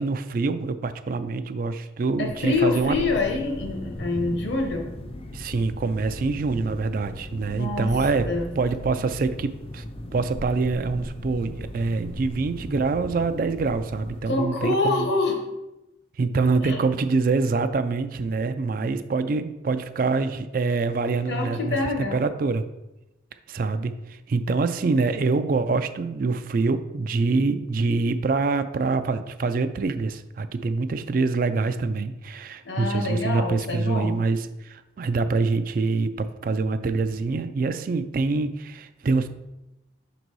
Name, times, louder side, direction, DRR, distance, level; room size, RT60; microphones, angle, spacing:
voice 1, 0.0-3.0 5.3-8.3 8.6-9.8 10.1-15.1 16.2-21.8 22.1-22.6 23.5-39.3, right 3 dB, 45° right, 11 dB, 0.3 m, -25 dB
voice 2, 2.2-4.9 7.5-7.9 8.1-8.5 14.3-15.4 16.6-16.8 21.3-22.2 32.6-34.1, left 3 dB, 65° left, 3 dB, 1.1 m, -26 dB
sound 1, 2.2-14.2, left 1 dB, 30° left, 0.5 m, -37 dB
6.1 x 4.0 x 4.6 m, 0.96 s
head